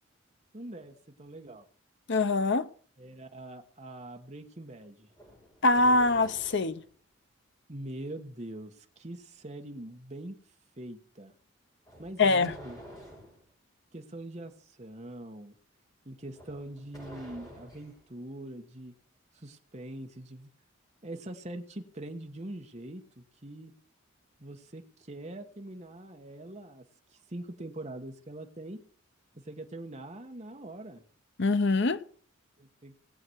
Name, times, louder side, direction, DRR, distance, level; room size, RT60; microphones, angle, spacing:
voice 1, 0.5-1.6 3.0-5.1 7.7-10.4 10.8-11.3 12.0-12.8 13.9-14.5 14.8-15.5 16.0-18.9 19.3-20.5 21.0-23.7 24.4-26.8 27.3-28.8 29.5-31.0 32.6-32.9, right 1 dB, 30° right, 1.4 m, -43 dB
voice 2, 2.1-2.6 5.6-6.8 12.2-12.5 31.4-32.0, left 3 dB, 55° left, 0.8 m, -24 dB
sound 1, 5.1-6.9 11.8-13.4 16.3-18.0, equal, 15° left, 6.6 m, -49 dB
19.0 x 7.8 x 4.6 m
head